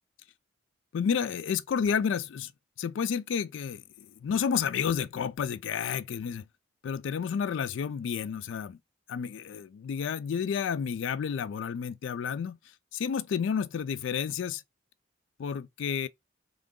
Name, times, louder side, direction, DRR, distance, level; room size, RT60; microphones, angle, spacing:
voice 1, 0.9-2.5 2.8-6.5 6.8-8.8 9.1-12.6 12.9-14.6 15.4-16.1, left 7 dB, 70° left, 0.3 m, -31 dB
3.5 x 2.5 x 3.6 m
head